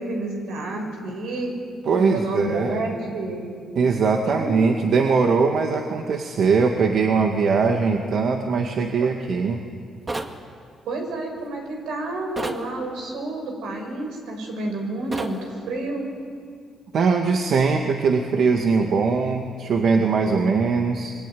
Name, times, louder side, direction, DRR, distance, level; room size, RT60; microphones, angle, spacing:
voice 1, 0.0-1.5 2.0-3.5 4.2-4.6 10.9-16.0, right 2 dB, 85° right, 2 dB, 6.3 m, -29 dB
voice 2, 1.9-2.8 3.8-9.6 16.9-21.1, right 5 dB, 65° right, 3 dB, 2.0 m, -21 dB
sound 1, 10.1-10.4 12.4-12.6 15.1-15.4, right 2 dB, 25° right, 2.1 m, -30 dB
26.5 x 22.0 x 9.4 m, 2.2 s
cardioid pair, 90°, 0 cm